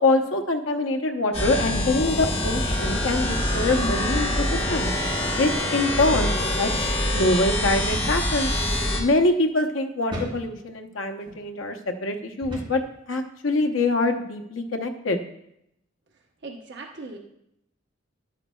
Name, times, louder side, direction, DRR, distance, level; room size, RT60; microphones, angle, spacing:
voice 1, 0.0-4.4 4.7-4.9 5.3-6.7 7.1-8.5 9.0-12.8 13.1-15.2, left 2 dB, 75° left, 5 dB, 0.8 m, -24 dB
sound 1, 1.3-9.0, left 1 dB, 30° left, 1.7 m, -25 dB
sound 2, 4.7-5.0 5.3-5.4 6.1-6.4 7.9-8.2 8.9-9.1 10.1-10.4 11.2-11.4 12.4-12.8, equal, 25° right, 3.7 m, -34 dB
voice 2, 16.4-17.2, right 3 dB, 60° right, 1 dB, 1.0 m, -38 dB
11.0 x 8.6 x 2.3 m, 0.79 s
head